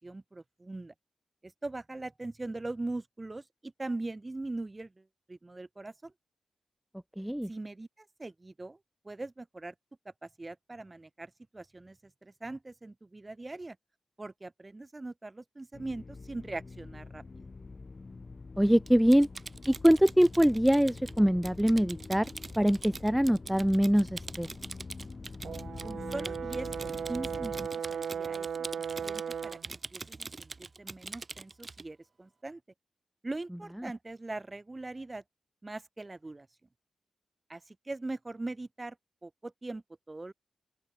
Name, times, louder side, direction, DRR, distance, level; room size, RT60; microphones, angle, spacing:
voice 1, 0.0-0.9 1.4-6.1 7.5-8.8 9.0-9.7 10.2-13.8 14.2-17.5 25.8-26.7 27.1-28.5 29.0-30.5 30.8-32.6 33.2-35.2 35.6-36.5 37.5-39.0 39.2-40.3, right 2 dB, 30° right, 6.9 m, -41 dB
voice 2, 7.2-7.5 18.6-19.3 19.7-22.3 22.6-24.5 33.8-33.9, equal, 5° right, 0.8 m, -24 dB
sound 1, 15.7-27.7, left 3 dB, 45° left, 5.1 m, -45 dB
Typing, 18.9-31.9, right 3 dB, 45° right, 7.3 m, -44 dB
Brass instrument, 25.4-29.7, right 7 dB, 85° right, 0.6 m, -36 dB
open air
cardioid pair, 65°, 0 cm